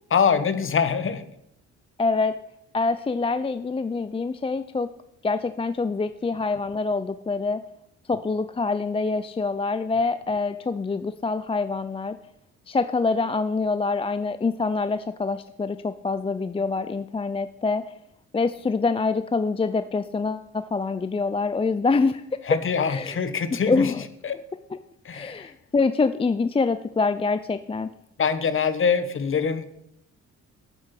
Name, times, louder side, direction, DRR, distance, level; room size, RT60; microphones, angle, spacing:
voice 1, 0.1-1.2 22.5-23.9 24.2-24.4 25.0-25.5 28.2-29.6, left 6 dB, 45° left, 13 dB, 1.2 m, -24 dB
voice 2, 2.0-2.4 2.7-4.9 5.2-7.6 8.1-12.2 12.7-17.9 18.3-22.2 22.5-22.6 22.9-23.2 23.7-24.0 24.7-24.8 25.1-27.9, left 4 dB, 20° left, 13 dB, 0.5 m, -25 dB
12.0 x 8.7 x 6.0 m, 0.77 s
cardioid pair, 90°, 30 cm